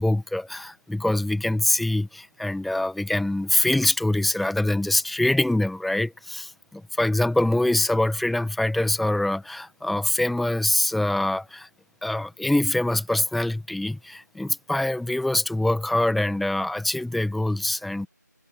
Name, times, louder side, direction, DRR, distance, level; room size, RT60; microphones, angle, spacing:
voice 1, 0.0-11.7 12.0-18.1, left 1 dB, ahead, 1.2 m, -24 dB
figure-of-eight pair, 165°, 10 cm